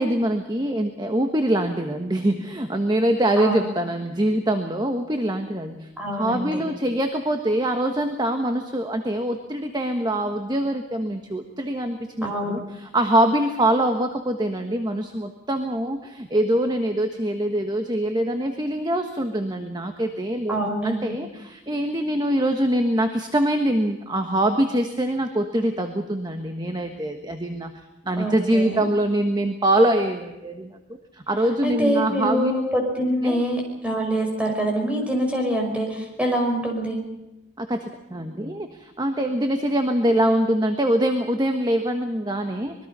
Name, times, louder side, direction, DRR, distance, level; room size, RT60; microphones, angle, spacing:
voice 1, 0.0-27.7 28.0-30.8 31.1-32.5 33.2-33.4 37.6-42.7, right 1 dB, 25° right, 5 dB, 1.3 m, -24 dB
voice 2, 6.0-6.6 12.2-12.6 20.5-21.2 28.2-28.8 31.6-37.0, equal, 5° right, 2 dB, 5.3 m, -25 dB
25.0 x 21.5 x 5.6 m, 0.96 s
head